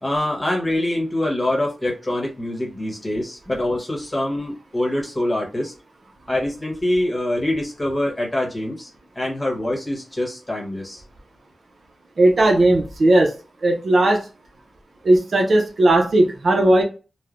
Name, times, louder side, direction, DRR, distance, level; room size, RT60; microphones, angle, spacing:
voice 1, 0.0-5.7 6.3-8.9 9.1-11.0, left 1 dB, 20° left, -1 dB, 1.1 m, -24 dB
voice 2, 12.2-13.3 13.6-14.2 15.0-16.8, right 1 dB, 65° right, 1 dB, 0.6 m, -16 dB
3.1 x 2.1 x 2.5 m, 0.33 s
wide cardioid pair, 110°, 0 cm